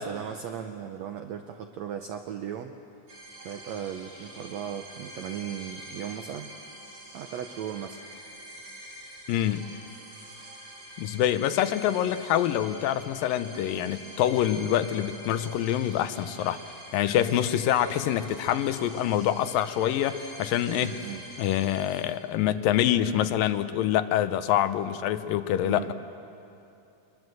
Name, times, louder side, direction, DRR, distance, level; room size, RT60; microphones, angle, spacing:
voice 1, 0.0-2.7 3.4-6.5 7.1-8.0 20.8-21.2 25.6-25.9, right 9 dB, 85° right, 5 dB, 1.5 m, -37 dB
sound 1, 3.1-22.0, right 1 dB, 40° right, 4.3 m, -45 dB
voice 2, 9.3-9.7 11.0-16.6 16.9-21.0 21.4-25.9, left 11 dB, 80° left, 11 dB, 2.4 m, -26 dB
24.0 x 22.0 x 7.7 m, 2.7 s
omnidirectional pair, 4.2 m